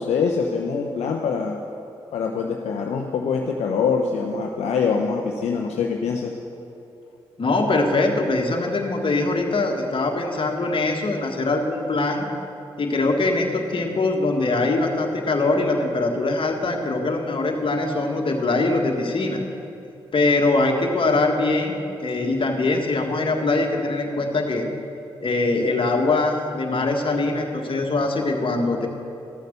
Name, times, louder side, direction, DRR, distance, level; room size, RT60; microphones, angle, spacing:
voice 1, 0.0-1.6 2.1-6.4, left 5 dB, 75° left, 1 dB, 0.7 m, -24 dB
voice 2, 7.4-12.3 12.8-19.4 20.1-24.6 25.2-28.9, left 2 dB, 50° left, 2 dB, 1.6 m, -22 dB
13.0 x 6.6 x 6.7 m, 2.8 s
supercardioid pair, 45°, 11 cm